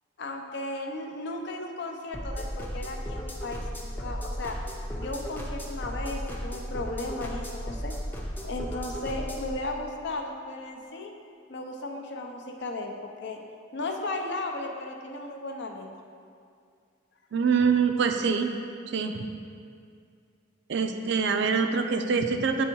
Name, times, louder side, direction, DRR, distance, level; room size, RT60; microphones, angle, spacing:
voice 1, 0.2-4.6 5.0-7.9 8.4-11.1 11.5-12.9 13.2-13.4 13.7-15.9, left 2 dB, 60° left, 2 dB, 0.6 m, -35 dB
sound 1, 2.1-9.5, equal, 10° left, 0.6 m, -35 dB
voice 2, 17.3-18.5 18.9-19.3 20.7-22.6, right 5 dB, 60° right, 6 dB, 0.4 m, -25 dB
7.8 x 3.4 x 4.6 m, 2.3 s
head